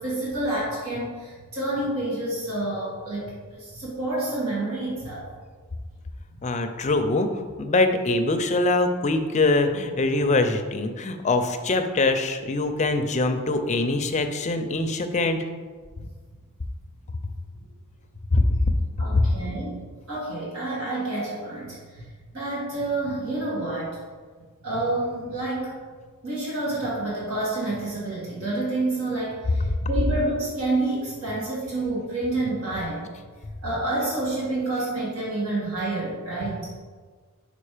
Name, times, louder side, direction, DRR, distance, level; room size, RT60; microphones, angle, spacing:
voice 1, 0.0-5.3 16.0-16.1 19.0-19.8 20.1-22.0 22.3-24.0 24.6-25.7 26.2-33.0 33.6-36.7, right 2 dB, 70° right, -6 dB, 2.0 m, -28 dB
voice 2, 6.4-7.3 7.6-15.4 18.3-18.4 19.1-19.2, left 2 dB, 35° left, 7 dB, 0.5 m, -23 dB
5.4 x 5.2 x 5.0 m, 1.5 s
head